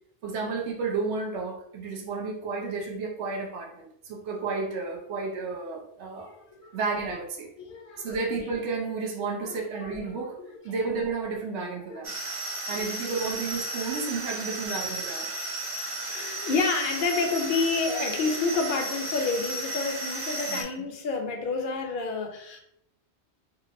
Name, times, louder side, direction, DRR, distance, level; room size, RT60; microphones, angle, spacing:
voice 1, 0.2-6.3 6.7-7.5 8.0-10.4 10.6-12.1 12.7-15.3 20.5-20.9, right 4 dB, 75° right, -1 dB, 0.9 m, -32 dB
voice 2, 6.1-6.8 7.6-8.2 9.4-9.9 10.2-10.3 10.7-10.8 11.6-12.0 12.6-13.2 16.0-22.6, left 4 dB, 60° left, 3 dB, 0.6 m, -30 dB
sound 1, 12.0-20.6, right 1 dB, 45° right, 0.4 m, -34 dB
2.9 x 2.4 x 2.5 m, 0.74 s
omnidirectional pair, 1.2 m